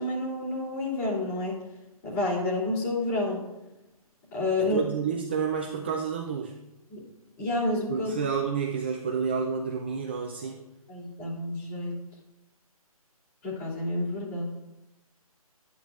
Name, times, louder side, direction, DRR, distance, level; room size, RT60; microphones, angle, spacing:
voice 1, 0.0-1.5 2.0-3.4 4.3-4.8 6.9-7.0 7.4-8.1 10.9-11.9 13.4-14.4, left 2 dB, 25° left, -5 dB, 2.8 m, -29 dB
voice 2, 4.6-6.6 7.9-10.7, right 6 dB, 20° right, -1 dB, 0.3 m, -30 dB
11.0 x 9.0 x 2.4 m, 0.96 s
hypercardioid pair, 155°, 19 cm